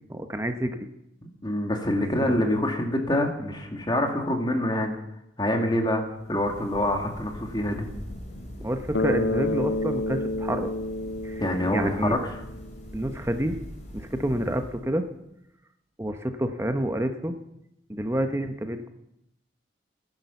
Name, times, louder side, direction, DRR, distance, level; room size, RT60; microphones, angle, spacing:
voice 1, 0.1-0.9 2.2-2.3 8.6-10.7 11.2-12.2 12.9-13.6 13.9-15.1 16.0-17.3 17.9-18.9, right 1 dB, 15° right, 7 dB, 0.8 m, -28 dB
voice 2, 1.4-4.9 5.4-6.0 6.3-7.9 11.4-12.2, left 1 dB, 20° left, 3 dB, 2.1 m, -26 dB
sound 1, 6.0-15.2, equal, 40° left, 3.3 m, -43 dB
Bass guitar, 8.9-12.9, left 2 dB, 70° left, 0.7 m, -29 dB
15.5 x 11.0 x 7.0 m, 0.83 s
head